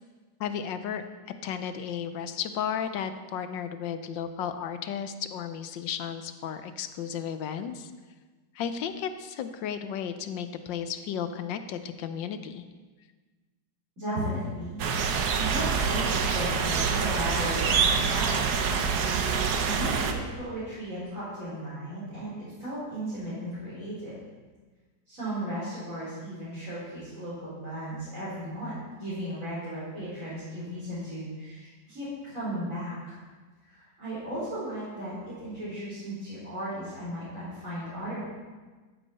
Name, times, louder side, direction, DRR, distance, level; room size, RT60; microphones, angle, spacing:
voice 1, 0.4-7.9 8.5-12.6, left 8 dB, 85° left, 10 dB, 1.4 m, -34 dB
voice 2, 14.0-14.8 15.4-18.5 19.6-24.1 25.1-33.2 33.6-38.2, right 1 dB, 45° right, -12 dB, 4.6 m, -35 dB
sound 1, 14.8-20.1, right 5 dB, 65° right, 1.4 m, -26 dB
14.0 x 8.9 x 4.2 m, 1.3 s
omnidirectional pair, 2.0 m